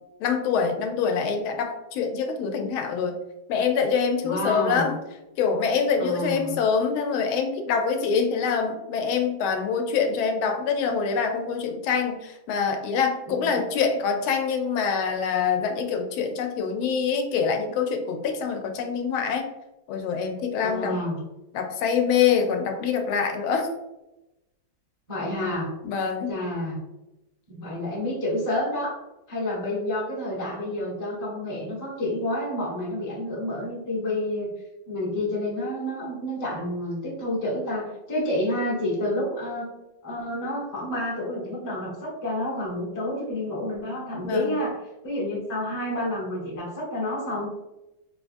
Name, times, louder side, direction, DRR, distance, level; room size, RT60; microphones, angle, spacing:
voice 1, 0.2-3.2 3.5-5.0 5.4-19.5 19.9-21.0 21.5-23.7 25.8-26.4 44.2-44.6, left 6 dB, 85° left, 4 dB, 1.4 m, -25 dB
voice 2, 4.2-4.9 6.0-6.5 13.3-13.5 20.6-21.2 25.1-25.7 26.3-26.8 27.5-29.0 29.3-34.5 34.9-39.7 40.0-44.8 45.0-47.5, left 1 dB, 20° left, -6 dB, 0.5 m, -29 dB
3.9 x 2.3 x 2.5 m, 0.95 s
omnidirectional pair, 2.2 m